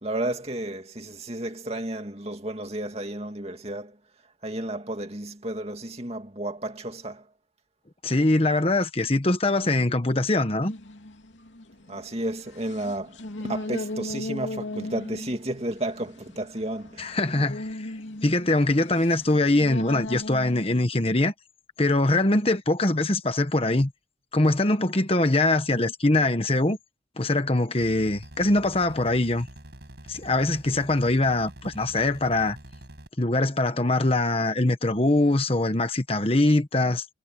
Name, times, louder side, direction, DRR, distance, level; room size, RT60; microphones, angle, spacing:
voice 1, 0.0-3.9 4.4-7.2 11.9-13.2 13.4-17.1, right 1 dB, 35° right, 2.5 m, -32 dB
voice 2, 8.0-10.7 17.0-17.9 18.2-21.3 21.8-23.9 24.3-26.8 27.2-29.5 30.1-32.6 33.2-37.0, left 2 dB, 30° left, 1.2 m, -23 dB
sound 1, 10.6-20.8, left 1 dB, 85° left, 3.0 m, -38 dB
sound 2, 27.8-33.1, right 1 dB, 60° right, 5.3 m, -45 dB
head